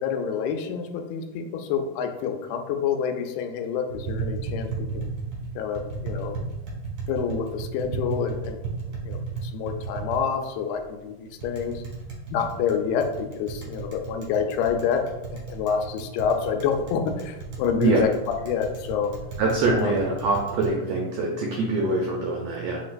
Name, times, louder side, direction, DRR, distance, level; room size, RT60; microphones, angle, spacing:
voice 1, 0.0-4.7 4.9-5.0 5.6-6.4 7.1-8.6 9.0-11.8 12.3-15.0 15.3-18.1 18.4-19.1 19.7-19.9, left 7 dB, 90° left, 5 dB, 2.1 m, -27 dB
Tap, 3.9-20.7, right 4 dB, 60° right, 1.2 m, -35 dB
voice 2, 17.7-18.1 19.4-22.8, right 2 dB, 85° right, -1 dB, 1.4 m, -24 dB
5.7 x 3.0 x 2.5 m, 1.0 s
omnidirectional pair, 3.6 m